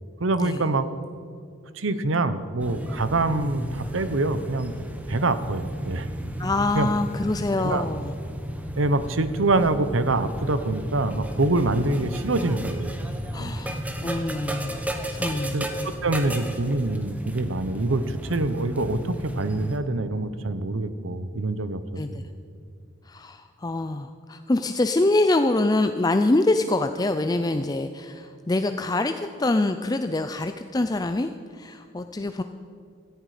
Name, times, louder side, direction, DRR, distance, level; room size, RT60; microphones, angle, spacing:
voice 1, 0.2-0.9 1.8-6.1 6.7-6.9 7.6-7.9 8.8-13.1 13.4-13.5 15.5-15.7 16.0-22.2, right 2 dB, 85° right, 12 dB, 0.9 m, -25 dB
sound 1, 2.6-19.8, equal, 10° right, 1.2 m, -33 dB
voice 2, 6.4-8.1 13.3-14.8 15.1-15.6 22.0-22.2 23.1-32.4, left 2 dB, 20° left, 8 dB, 0.4 m, -25 dB
17.0 x 15.0 x 5.0 m, 2.4 s
head